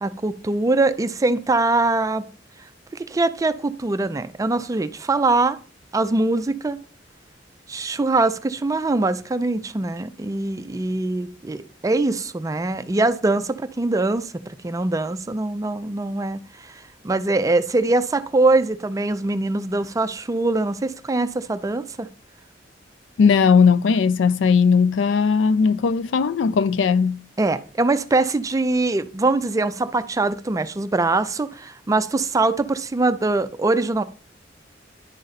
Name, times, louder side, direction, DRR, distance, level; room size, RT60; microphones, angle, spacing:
voice 1, 0.0-2.3 2.9-5.6 5.9-6.8 7.7-22.1 27.4-34.0, right 2 dB, 20° right, 0.4 m, -22 dB
voice 2, 23.2-27.2, left 5 dB, 85° left, 0.4 m, -18 dB
10.5 x 3.9 x 4.0 m
head